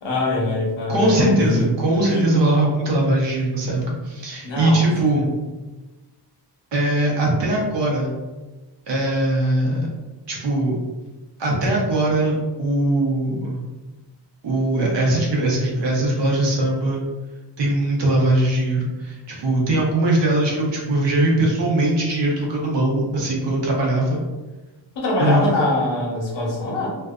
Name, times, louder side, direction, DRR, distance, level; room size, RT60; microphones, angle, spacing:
voice 1, 0.0-1.7 2.1-2.3 4.4-4.9 5.2-5.3 25.0-26.9, left 2 dB, 85° left, -2 dB, 0.9 m, -23 dB
voice 2, 0.9-5.3 6.7-8.1 8.9-9.9 10.3-10.8 11.4-13.6 14.4-17.0 17.6-24.2 25.2-25.4, right 1 dB, 75° right, -2 dB, 0.9 m, -20 dB
2.5 x 2.2 x 2.4 m, 1.2 s
wide cardioid pair, 130°, 43 cm